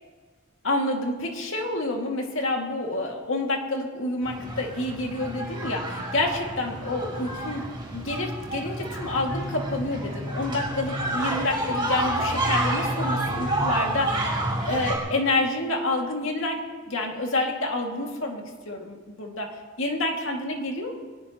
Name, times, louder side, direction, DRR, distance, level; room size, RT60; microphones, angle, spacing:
voice 1, 0.6-14.2 14.7-20.9, left 2 dB, 70° left, 1 dB, 2.2 m, -28 dB
sound 1, 4.2-14.9, right 1 dB, 20° right, 5.3 m, -29 dB
21.5 x 18.5 x 3.0 m, 1.5 s
head